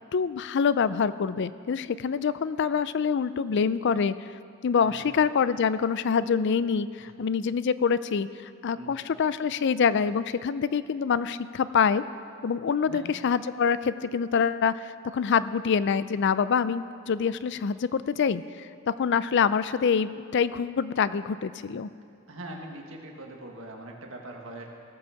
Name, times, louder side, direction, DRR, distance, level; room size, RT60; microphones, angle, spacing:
voice 1, 0.1-4.1 4.6-12.0 12.4-21.9, left 6 dB, 60° left, 15 dB, 0.4 m, -26 dB
voice 2, 12.9-13.2 22.3-24.7, right 1 dB, 70° right, 1 dB, 1.7 m, -42 dB
17.5 x 6.3 x 7.0 m, 2.4 s
head